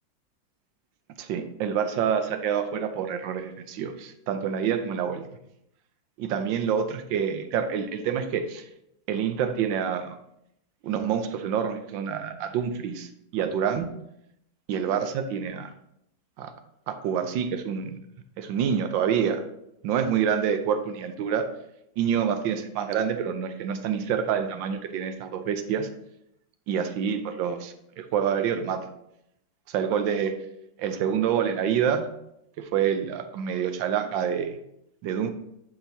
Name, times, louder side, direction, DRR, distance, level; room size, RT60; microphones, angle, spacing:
voice 1, 1.2-5.2 6.2-8.6 9.1-10.1 10.8-13.9 14.7-15.7 16.4-16.5 16.9-18.0 18.4-19.4 19.8-21.5 22.0-25.9 26.7-28.9 29.7-30.3 30.8-32.1 32.6-34.6 35.0-35.3, right 8 dB, 85° right, 9 dB, 1.4 m, -27 dB
9.3 x 5.8 x 2.8 m, 0.79 s
omnidirectional pair, 2.0 m